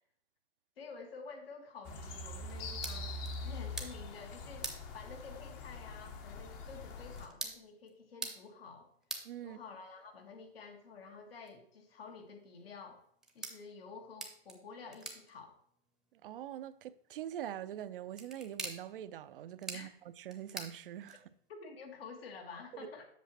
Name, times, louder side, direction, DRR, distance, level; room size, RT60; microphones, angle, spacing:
voice 1, 0.8-3.1 3.4-8.9 9.4-13.0 13.3-15.6 19.7-19.9 21.5-23.1, left 4 dB, 70° left, 1.7 m, -50 dB
sound 1, 1.8-7.3, left 2 dB, 30° left, 0.8 m, -43 dB
sound 2, 2.4-21.5, right 2 dB, ahead, 0.7 m, -49 dB
voice 2, 9.2-9.6 16.1-21.2 22.7-22.9, right 11 dB, 60° right, 0.5 m, -44 dB
8.1 x 6.1 x 3.0 m
hypercardioid pair, 130°, 31 cm